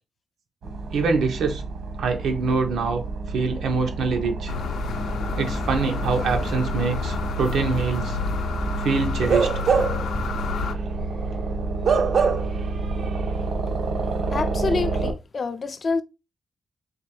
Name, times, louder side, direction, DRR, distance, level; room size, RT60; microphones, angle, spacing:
sound 1, 0.6-15.1, right 3 dB, 70° right, 1.2 m, -29 dB
voice 1, 0.9-1.6 2.0-3.0 3.3-4.5 5.4-8.2 8.8-9.5, right 4 dB, 90° right, 1.0 m, -24 dB
sound 2, 4.5-10.7, left 6 dB, 90° left, 0.5 m, -30 dB
Bark / Livestock farm animals working animals, 9.2-10.1 10.5-10.7 11.8-12.7 13.0-13.1, right 6 dB, 50° right, 0.5 m, -22 dB
voice 2, 14.3-16.0, left 4 dB, 35° left, 0.3 m, -27 dB
4.2 x 2.9 x 3.2 m
wide cardioid pair, 175°, 0 cm